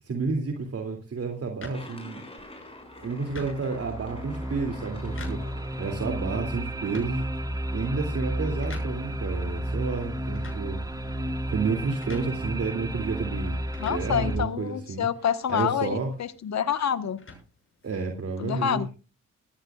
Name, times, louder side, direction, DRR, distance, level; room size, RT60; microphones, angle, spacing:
voice 1, 0.0-2.2 3.0-5.4 5.8-7.2 7.7-10.8 11.5-13.6 13.9-15.1 15.5-16.1 17.8-18.9, right 4 dB, 50° right, 3 dB, 2.8 m, -30 dB
sound 1, 1.6-18.2, left 3 dB, 45° left, 6.9 m, -49 dB
sound 2, 1.7-6.7, left 2 dB, 20° left, 6.3 m, -47 dB
sound 3, 2.4-2.5 3.0-14.4, right 1 dB, 15° right, 1.8 m, -32 dB
voice 2, 13.8-17.2 18.4-18.9, left 8 dB, 65° left, 11 dB, 1.4 m, -27 dB
18.0 x 14.5 x 2.4 m, 0.32 s
cardioid pair, 70°, 30 cm